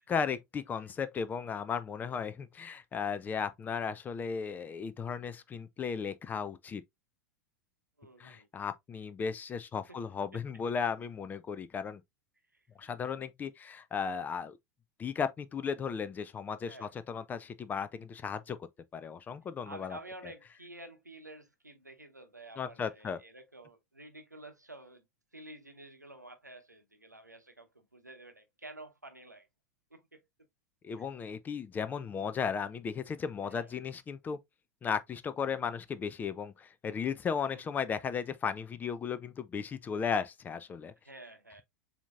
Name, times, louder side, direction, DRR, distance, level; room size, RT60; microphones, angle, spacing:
voice 1, 0.1-6.8 8.2-12.0 12.8-14.6 15.0-20.0 22.6-23.2 30.8-34.4 34.8-40.9, left 6 dB, 20° left, 0.4 m, -35 dB
voice 2, 8.0-8.5 9.9-10.0 10.3-10.4 16.6-16.9 19.7-25.1 25.3-29.5 29.9-30.2 30.9-31.1 31.9-32.1 33.4-33.8 37.5-37.8 41.0-41.6, right 1 dB, 90° right, 0.8 m, -50 dB
7.0 x 2.8 x 2.4 m
figure-of-eight pair, 90°, 9 cm